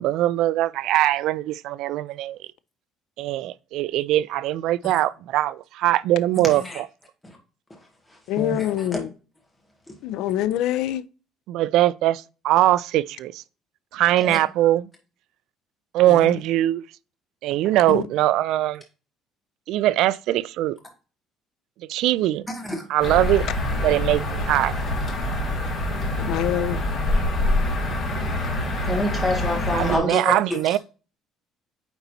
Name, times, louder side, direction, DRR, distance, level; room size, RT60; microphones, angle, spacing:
voice 1, 0.0-2.4 3.2-6.9 11.5-13.4 13.9-14.9 15.9-16.8 17.4-18.8 19.7-20.8 21.9-22.5 22.9-23.5 23.7-24.7 29.7-30.8, right 14 dB, 65° right, 0.3 m, -21 dB
voice 2, 6.4-6.8 8.4-9.0 14.2-14.4 22.5-22.8 28.8-30.8, left 1 dB, 10° left, 1.9 m, -27 dB
voice 3, 8.3-9.1 10.0-11.0 16.2-16.3 17.9-18.0 26.2-26.8, left 12 dB, 70° left, 0.4 m, -25 dB
sound 1, 23.0-30.0, left 1 dB, 35° left, 2.2 m, -25 dB
8.9 x 4.0 x 2.7 m
cardioid pair, 155°, 0 cm